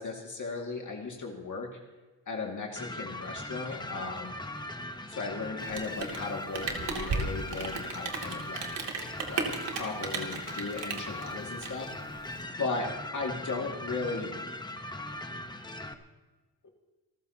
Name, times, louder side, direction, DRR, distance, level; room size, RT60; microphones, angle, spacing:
voice 1, 0.0-1.7 2.3-4.3 5.1-11.9 12.6-12.9 13.1-14.3, left 3 dB, 45° left, 0 dB, 2.2 m, -36 dB
sound 1, 2.8-15.9, left 1 dB, 10° left, 0.9 m, -40 dB
Rain, 5.6-12.4, right 4 dB, 80° right, 2.8 m, -35 dB
28.0 x 14.5 x 2.9 m, 1.2 s
wide cardioid pair, 125°, 41 cm